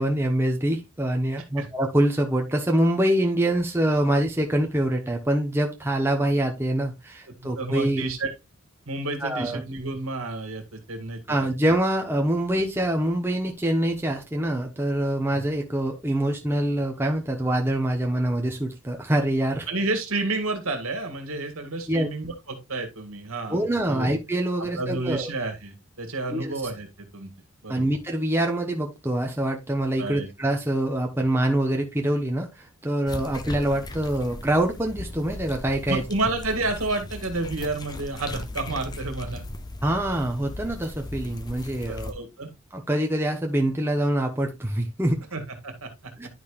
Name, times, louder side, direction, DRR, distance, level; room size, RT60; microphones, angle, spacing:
voice 1, 0.0-8.1 9.2-9.6 11.3-19.7 21.9-22.1 23.5-25.3 26.3-26.5 27.7-36.0 39.8-42.1 42.7-45.2 46.2-46.3, right 1 dB, 10° right, 1 dB, 0.9 m, -25 dB
voice 2, 7.3-8.3 8.9-11.2 15.3-15.4 19.7-24.1 24.6-26.9 27.1-27.3 27.6-27.9 30.0-30.3 35.9-39.5 41.9-42.5 45.3-46.1, right 2 dB, 70° right, 5 dB, 1.8 m, -30 dB
sound 1, 33.1-42.1, left 2 dB, 20° left, 0.5 m, -37 dB
10.5 x 5.2 x 2.4 m, 0.22 s
head